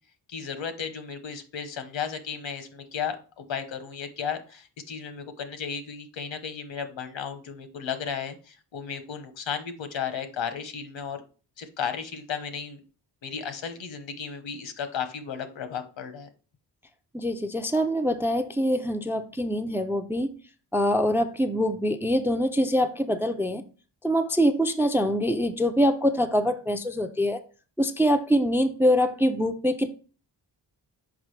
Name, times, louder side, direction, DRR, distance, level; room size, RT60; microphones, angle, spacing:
voice 1, 0.3-11.2 11.6-12.8 13.2-16.3, left 7 dB, 85° left, 1.1 m, -34 dB
voice 2, 17.1-20.3 20.7-23.6 24.0-27.4 27.8-29.9, equal, 5° right, 0.3 m, -24 dB
6.0 x 5.1 x 3.2 m
wide cardioid pair, 150°, 44 cm